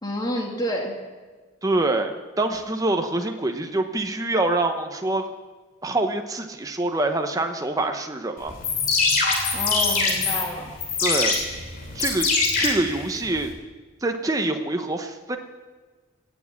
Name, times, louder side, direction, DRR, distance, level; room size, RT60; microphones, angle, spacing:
voice 1, 0.0-0.9 9.5-10.7, left 1 dB, 20° left, 0 dB, 2.4 m, -29 dB
voice 2, 1.6-5.3 5.8-8.5 11.0-11.4 11.9-12.3 12.6-13.5 14.0-15.4, right 2 dB, 20° right, 5 dB, 0.8 m, -25 dB
sound 1, 8.5-13.5, left 4 dB, 45° left, 2.9 m, -24 dB
17.0 x 7.3 x 8.4 m, 1.3 s
head